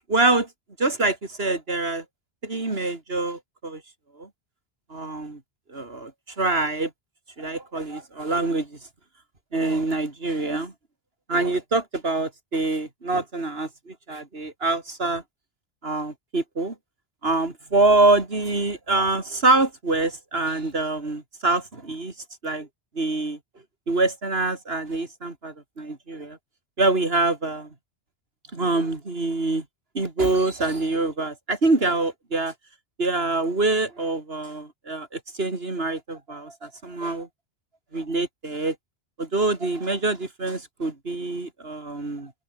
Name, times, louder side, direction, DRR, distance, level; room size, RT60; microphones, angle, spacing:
voice 1, 0.1-0.5 0.8-2.0 2.4-3.8 4.2-4.3 4.9-5.4 5.7-6.9 7.4-8.8 9.5-10.7 11.3-15.2 15.8-16.8 17.2-22.1 22.4-22.7 22.9-23.4 23.9-26.4 26.8-27.7 28.5-29.7 29.9-32.5 33.0-37.3 37.9-38.8 39.2-42.3, right 2 dB, 65° right, 3.7 m, -25 dB
open air
omnidirectional pair, 1.1 m